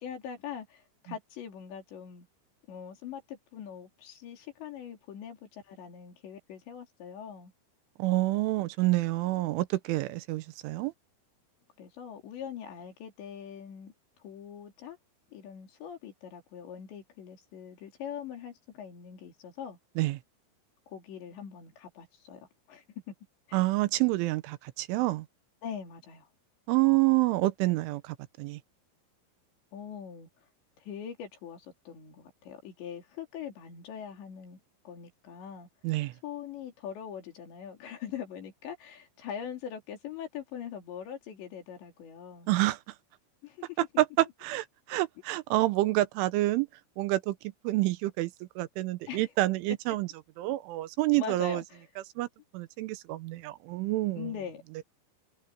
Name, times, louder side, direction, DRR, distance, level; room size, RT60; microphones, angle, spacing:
voice 1, 0.0-2.3 2.7-7.5 11.8-13.9 14.2-15.0 15.3-19.8 20.9-22.8 23.5-23.6 25.6-26.3 29.7-30.3 30.8-35.7 36.2-42.5 43.4-43.8 49.1-49.3 51.1-51.8 54.2-54.8, left 8 dB, 65° left, 5.4 m, -42 dB
voice 2, 8.0-10.9 20.0-20.2 23.5-25.3 26.7-28.6 35.8-36.1 42.5-42.8 43.8-46.7 47.0-47.4 47.6-50.1 50.4-51.6 52.2-52.3 52.5-54.3 54.8-54.9, right 18 dB, 90° right, 3.3 m, -28 dB
omnidirectional pair, 5.6 m